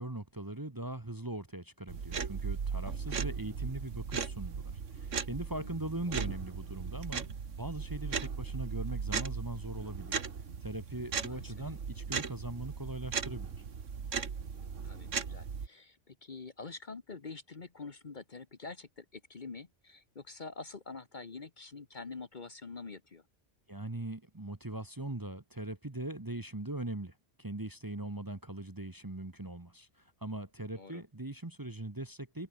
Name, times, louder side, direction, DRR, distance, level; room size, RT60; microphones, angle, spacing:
voice 1, 0.0-7.3 7.6-10.2 10.6-13.5 23.7-27.1 27.4-29.9 30.2-32.5, right 2 dB, 20° right, 1.2 m, -40 dB
sound 1, 1.9-15.7, right 6 dB, 85° right, 1.9 m, -37 dB
voice 2, 5.6-6.3 11.3-11.5 14.8-23.2 30.7-31.0, left 4 dB, 40° left, 1.3 m, -46 dB
omnidirectional pair, 1.2 m